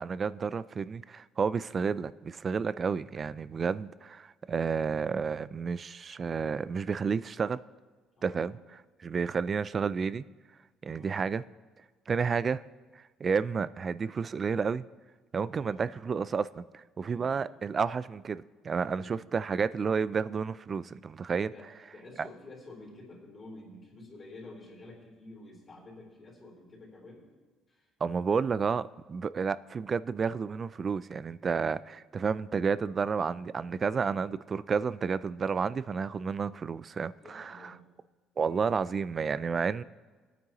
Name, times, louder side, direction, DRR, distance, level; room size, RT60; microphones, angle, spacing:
voice 1, 0.0-7.6 8.2-8.5 9.0-10.2 10.8-11.4 12.1-12.6 13.2-14.8 15.3-21.5 28.0-37.7 38.4-39.8, right 5 dB, 30° right, 17 dB, 0.3 m, -31 dB
voice 2, 8.2-8.6 10.8-11.2 15.5-16.0 17.1-17.6 18.8-19.2 21.5-27.3 27.7-27.9 37.2-37.9, left 2 dB, 30° left, -3 dB, 3.7 m, -50 dB
21.0 x 9.3 x 3.0 m, 1.4 s
cardioid pair, 130°, 0 cm